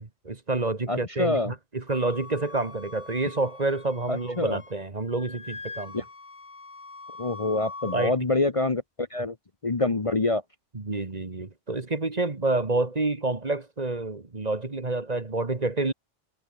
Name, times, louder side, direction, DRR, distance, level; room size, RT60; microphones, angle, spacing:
voice 1, 0.0-6.0 7.9-8.1 10.7-15.9, right 2 dB, 35° right, 1.7 m, -28 dB
voice 2, 0.9-1.5 4.1-4.6 5.9-6.0 7.2-9.3 9.6-10.4, left 2 dB, 30° left, 1.1 m, -26 dB
Wind instrument woodwind instrument, 1.9-4.8 5.1-8.1, left 3 dB, 65° left, 3.1 m, -43 dB
omnidirectional pair, 1.2 m